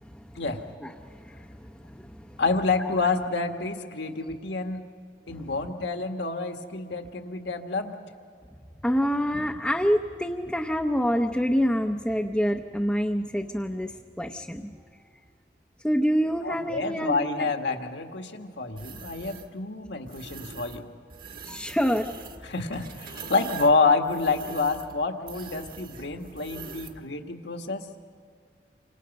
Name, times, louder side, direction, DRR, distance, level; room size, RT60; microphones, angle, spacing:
voice 1, 0.0-0.4 0.8-2.4 5.3-5.5 8.8-14.9 15.8-17.5 21.4-22.1, equal, 5° left, 1 dB, 0.7 m, -27 dB
voice 2, 2.4-4.8 5.3-8.0 16.4-20.9 22.4-27.9, left 3 dB, 65° left, 4 dB, 1.8 m, -28 dB
sound 1, 18.8-19.5 20.1-20.8 21.1-27.0, right 5 dB, 50° right, 1.8 m, -43 dB
29.0 x 25.5 x 5.5 m, 2.1 s
head